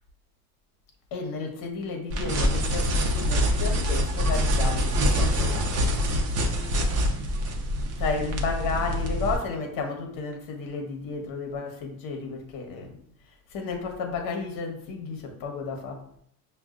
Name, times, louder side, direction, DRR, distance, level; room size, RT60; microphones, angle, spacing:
voice 1, 1.1-5.7 8.0-13.0 13.5-16.0, left 4 dB, 55° left, 3 dB, 1.1 m, -32 dB
sound 1, 2.1-9.4, equal, 40° right, 0.8 m, -25 dB
5.5 x 2.4 x 2.4 m, 0.66 s
supercardioid pair, 100°, 41 cm